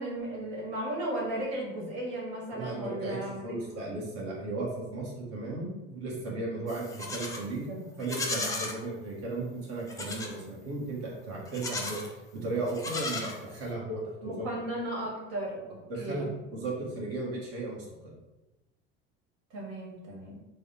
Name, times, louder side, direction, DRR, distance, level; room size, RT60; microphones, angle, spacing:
voice 1, 0.0-3.4 14.2-16.3 19.5-20.5, right 1 dB, 80° right, -3 dB, 1.2 m, -35 dB
voice 2, 2.5-12.0 12.3-14.5 15.9-16.3 16.5-18.1, right 2 dB, 55° right, -4 dB, 1.1 m, -35 dB
Livestock farm animals working animals, 6.7-7.5 8.0-8.8 9.9-10.4 11.5-12.1 12.7-13.7, left 2 dB, 10° left, 0.6 m, -35 dB
3.3 x 2.0 x 4.1 m, 1.0 s
supercardioid pair, 90°, 29 cm